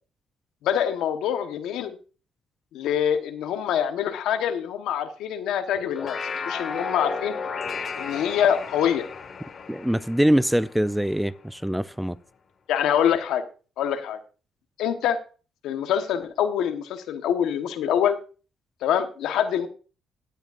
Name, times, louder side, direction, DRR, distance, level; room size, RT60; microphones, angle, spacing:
voice 1, 0.6-2.0 2.7-6.2 6.5-7.4 8.0-9.1 12.7-13.4 13.8-14.2 14.8-15.2 15.6-18.2 18.8-19.7, left 9 dB, 85° left, 1.1 m, -25 dB
sound 1, 5.7-11.3, left 5 dB, 50° left, 1.4 m, -34 dB
voice 2, 9.7-12.2, equal, 5° right, 0.4 m, -23 dB
16.0 x 8.1 x 2.5 m
cardioid pair, 90°, 0 cm